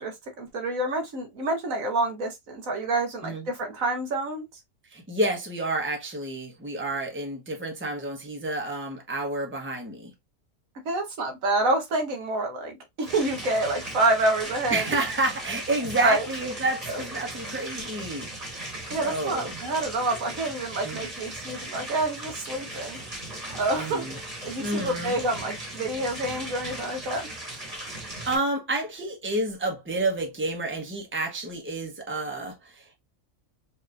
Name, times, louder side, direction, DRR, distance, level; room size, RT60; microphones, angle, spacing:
voice 1, 0.0-4.5 10.8-14.8 16.0-16.2 16.9-17.0 18.9-23.0 23.4-24.0 24.4-27.3, right 2 dB, 70° right, 1.5 m, -27 dB
voice 2, 4.9-10.1 14.7-18.3 19.0-19.5 20.8-21.0 23.8-24.1 24.6-25.2 27.9-33.0, right 2 dB, 10° right, 1.0 m, -29 dB
sound 1, 13.0-28.4, right 1 dB, 30° right, 1.5 m, -38 dB
5.1 x 2.8 x 2.5 m
omnidirectional pair, 1.5 m